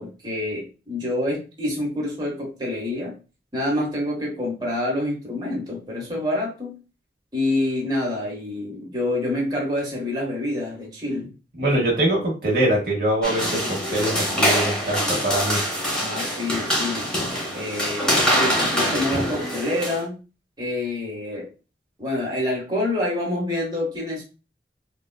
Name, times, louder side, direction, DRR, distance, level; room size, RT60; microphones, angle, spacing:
voice 1, 0.0-3.2 3.5-6.7 7.3-11.3 11.8-11.9 16.0-17.1 17.5-20.2 20.6-21.5 22.0-24.2, left 1 dB, 25° right, -3 dB, 0.9 m, -27 dB
voice 2, 11.6-15.6, right 1 dB, 55° right, -1 dB, 0.8 m, -23 dB
sound 1, 13.2-20.0, equal, 5° left, 0.7 m, -24 dB
3.3 x 2.3 x 2.2 m, 0.32 s
head